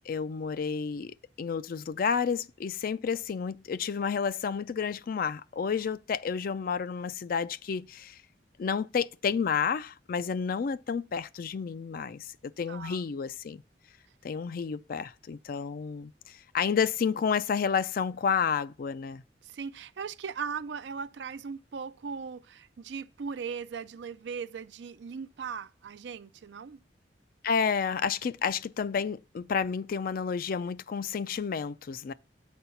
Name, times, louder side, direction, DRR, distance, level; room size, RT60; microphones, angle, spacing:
voice 1, 0.1-8.2 8.6-13.6 14.2-19.2 27.4-32.1, left 6 dB, 55° left, 0.4 m, -30 dB
voice 2, 12.7-13.0 19.4-26.8, right 6 dB, 75° right, 0.4 m, -38 dB
8.7 x 4.3 x 6.9 m
head